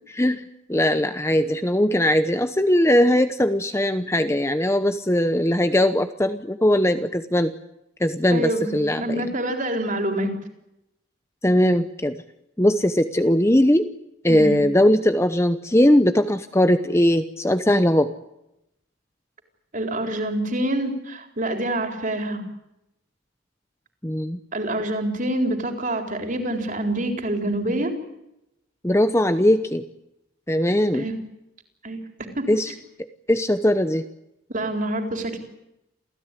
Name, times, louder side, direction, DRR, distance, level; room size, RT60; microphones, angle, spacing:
voice 1, 0.1-7.5 8.0-9.3 11.4-12.2 12.6-13.9 14.2-18.1 24.0-24.4 28.8-29.8 30.5-31.0 32.5-32.7 33.3-34.0, left 1 dB, 15° left, 10 dB, 0.8 m, -20 dB
voice 2, 8.3-8.7 9.0-10.3 14.3-14.6 19.7-22.4 24.5-27.9 30.9-31.1 31.8-32.0 32.3-32.5 34.5-35.4, right 1 dB, 40° right, 4 dB, 4.1 m, -26 dB
28.5 x 16.5 x 10.0 m, 0.87 s
head